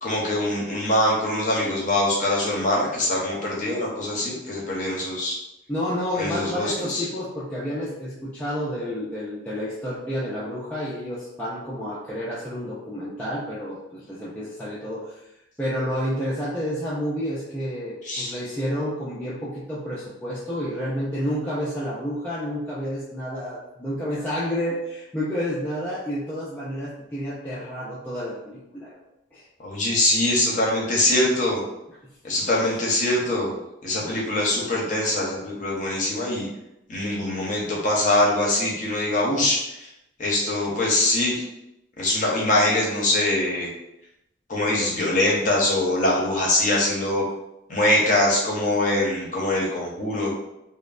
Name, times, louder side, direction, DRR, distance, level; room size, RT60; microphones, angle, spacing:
voice 1, 0.0-5.4 6.2-7.0 18.0-18.3 29.6-31.6 32.2-33.5 33.8-36.5 36.9-39.9 40.2-41.4 42.0-43.7 44.5-47.2 47.7-50.3, left 1 dB, 40° left, -3 dB, 0.7 m, -23 dB
voice 2, 5.7-15.2 15.6-29.0 29.3-29.4, equal, 10° left, -9 dB, 0.3 m, -30 dB
3.0 x 2.0 x 2.3 m, 0.87 s
head